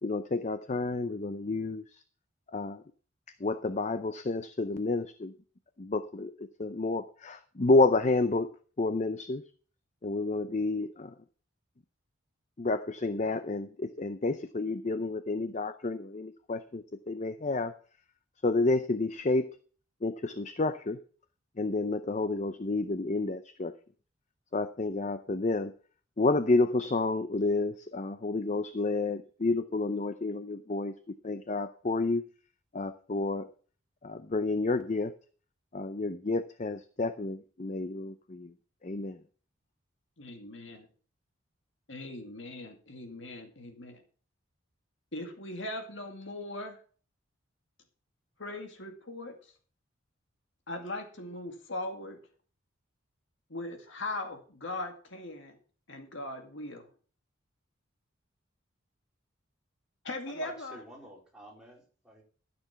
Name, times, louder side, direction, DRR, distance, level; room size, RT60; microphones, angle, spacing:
voice 1, 0.0-2.0 2.5-2.8 3.4-5.3 5.8-8.5 8.8-9.4 10.0-11.1 12.6-17.8 18.4-19.5 20.0-21.0 21.6-23.7 24.5-25.7 26.2-31.0 31.2-32.2 32.7-33.5 34.0-35.1 35.7-38.5 38.8-39.2, left 3 dB, 35° left, 11 dB, 0.6 m, -30 dB
voice 2, 40.2-40.9 41.9-44.0 45.1-46.8 48.4-49.4 50.7-52.2 53.5-55.6 55.9-56.9 60.0-60.8, left 2 dB, 65° left, 4 dB, 2.2 m, -39 dB
voice 3, 60.3-62.2, equal, 5° right, -3 dB, 3.9 m, -49 dB
13.0 x 6.9 x 5.8 m, 0.41 s
head